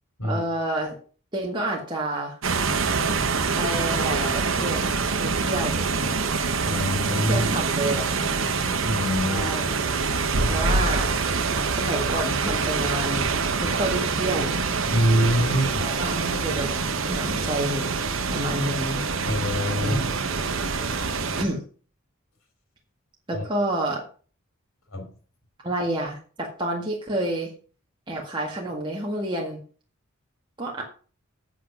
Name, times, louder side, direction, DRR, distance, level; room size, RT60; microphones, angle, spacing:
voice 1, 0.2-1.0 1.3-2.4 3.6-4.8 5.2-5.8 7.3-8.2 9.3-9.6 10.5-11.1 11.7-13.3 13.6-14.6 15.5-16.7 17.1-17.9 18.3-19.3 19.8-20.3 21.4-21.6 23.3-24.1 25.6-27.5 28.1-29.6 30.6-30.8, right 1 dB, 25° right, -1 dB, 1.7 m, -29 dB
sound 1, 2.4-21.4, right 4 dB, 70° right, 1.1 m, -25 dB
voice 2, 6.6-7.5 8.8-9.5 14.9-15.9 19.2-20.0 23.3-23.4 24.9-25.1, equal, 85° left, 4 dB, 2.7 m, -24 dB
8.2 x 7.8 x 5.9 m, 0.40 s
head